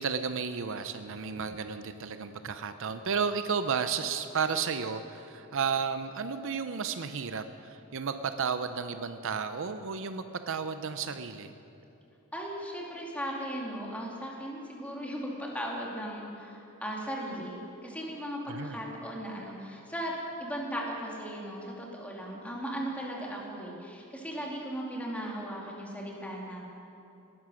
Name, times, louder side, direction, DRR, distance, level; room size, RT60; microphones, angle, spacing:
voice 1, 0.0-11.5 18.5-18.8, right 6 dB, 60° right, 10 dB, 0.6 m, -33 dB
voice 2, 12.3-26.6, equal, 5° left, -3 dB, 2.4 m, -37 dB
19.0 x 11.0 x 6.3 m, 2.8 s
head